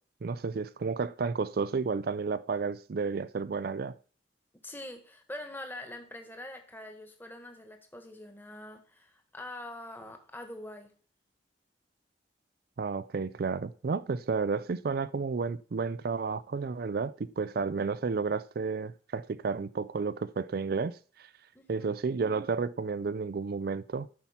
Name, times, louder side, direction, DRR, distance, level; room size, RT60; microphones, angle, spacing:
voice 1, 0.2-3.9 12.8-21.3 21.7-24.1, right 4 dB, 55° right, 0.4 m, -32 dB
voice 2, 4.6-10.9 21.5-21.9, left 1 dB, 10° left, 1.5 m, -44 dB
13.0 x 5.7 x 5.8 m
head